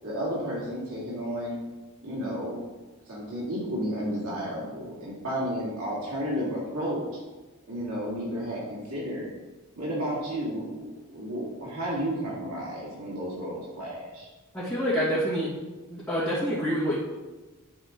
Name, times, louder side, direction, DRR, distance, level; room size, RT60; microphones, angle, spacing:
voice 1, 0.0-1.6 2.0-2.6 3.1-7.2 7.7-9.3 9.8-14.3, equal, 75° right, -6 dB, 2.2 m, -32 dB
voice 2, 14.5-15.5 15.9-17.0, equal, 10° left, -13 dB, 2.7 m, -27 dB
11.5 x 4.2 x 3.9 m, 1.2 s
head